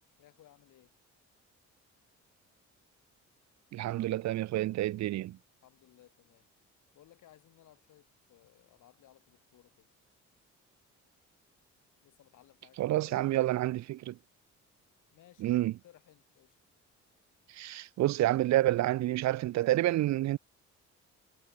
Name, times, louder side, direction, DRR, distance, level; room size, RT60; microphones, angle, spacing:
voice 1, 0.2-0.9 5.6-6.5 6.9-9.9 12.0-13.6 15.1-16.6, left 13 dB, 80° left, 7.6 m, -61 dB
voice 2, 3.7-5.4 12.8-14.2 15.4-15.7 17.5-20.4, right 15 dB, 65° right, 0.5 m, -29 dB
cardioid pair, 90°, 30 cm